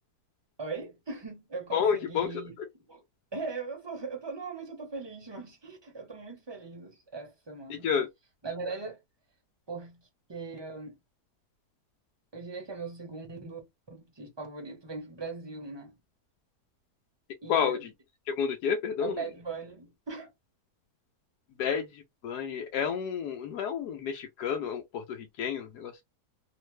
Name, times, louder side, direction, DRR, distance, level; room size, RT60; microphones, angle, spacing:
voice 1, 0.6-2.5 2.9-3.0 3.3-7.9 8.4-9.0 9.7-10.0 10.3-11.0 12.3-13.6 13.9-16.0 17.4-17.9 19.0-20.3, right 4 dB, 20° right, 0.8 m, -39 dB
voice 2, 1.7-2.3 7.8-8.1 17.5-17.8 18.3-19.2 21.6-21.8 22.2-26.0, left 7 dB, 80° left, 1.1 m, -30 dB
3.2 x 2.1 x 3.1 m
omnidirectional pair, 1.7 m